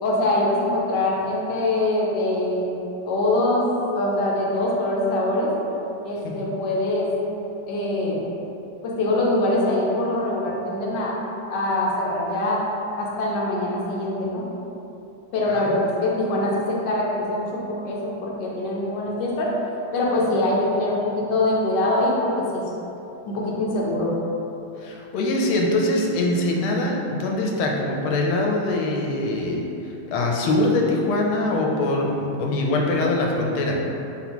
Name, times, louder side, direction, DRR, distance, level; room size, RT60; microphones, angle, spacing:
voice 1, 0.0-2.6 3.1-3.7 3.9-5.5 6.0-7.1 7.7-8.2 8.8-11.1 11.5-12.6 13.0-14.4 15.3-19.5 19.9-22.6 23.2-24.1, left 1 dB, 65° left, -4 dB, 1.3 m, -23 dB
voice 2, 24.8-33.8, left 2 dB, 85° left, 0 dB, 1.4 m, -23 dB
4.2 x 3.6 x 3.0 m, 2.9 s
omnidirectional pair, 2.2 m